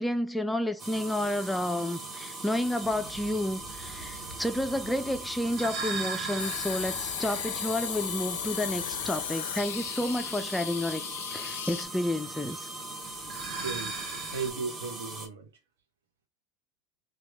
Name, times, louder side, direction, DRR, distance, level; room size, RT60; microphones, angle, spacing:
voice 1, 0.0-12.7, left 1 dB, 5° left, 0.4 m, -30 dB
sound 1, 0.8-15.3, right 2 dB, 25° right, 1.1 m, -41 dB
sound 2, 2.8-9.5 13.1-14.5, right 4 dB, 45° right, 1.0 m, -40 dB
sound 3, 6.4-11.8, left 11 dB, 80° left, 0.3 m, -36 dB
voice 2, 13.2-15.5, right 5 dB, 85° right, 0.8 m, -37 dB
3.0 x 2.3 x 3.4 m
hypercardioid pair, 85°, 0 cm